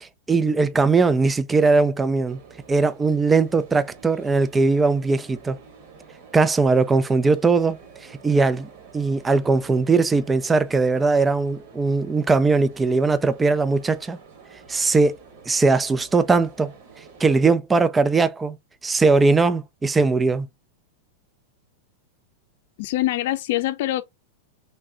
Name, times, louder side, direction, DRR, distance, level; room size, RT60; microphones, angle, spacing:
voice 1, 0.0-2.4 2.7-5.6 6.3-8.7 8.9-14.2 14.7-15.2 15.5-16.7 17.2-18.6 18.8-20.5, right 3 dB, 10° right, 0.3 m, -20 dB
sound 1, 2.3-17.4, right 5 dB, 50° right, 1.4 m, -48 dB
voice 2, 22.8-24.0, left 15 dB, 60° left, 0.5 m, -24 dB
3.3 x 2.6 x 3.5 m
supercardioid pair, 145°, 0 cm